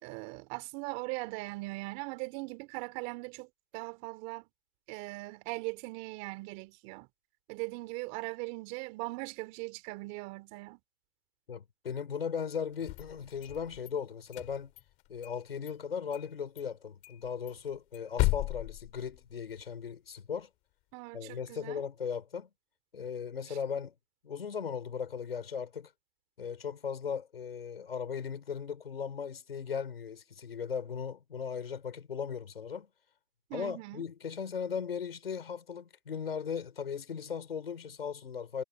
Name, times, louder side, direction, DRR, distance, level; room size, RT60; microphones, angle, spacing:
voice 1, 0.0-4.5 4.9-7.1 7.5-10.8 20.9-21.8 23.5-23.6 33.5-34.1, right 25 dB, 25° right, 2.8 m, -40 dB
voice 2, 11.5-14.7 15.1-20.5 21.1-22.5 22.9-23.9 24.2-25.9 26.4-32.9 33.5-38.6, left 6 dB, 75° left, 4.2 m, -37 dB
sound 1, 12.7-13.9 14.3-15.4 15.7-15.8 16.1-16.3 16.6-16.7 17.0-19.6, left 22 dB, 25° left, 2.3 m, -35 dB
hypercardioid pair, 150°, 29 cm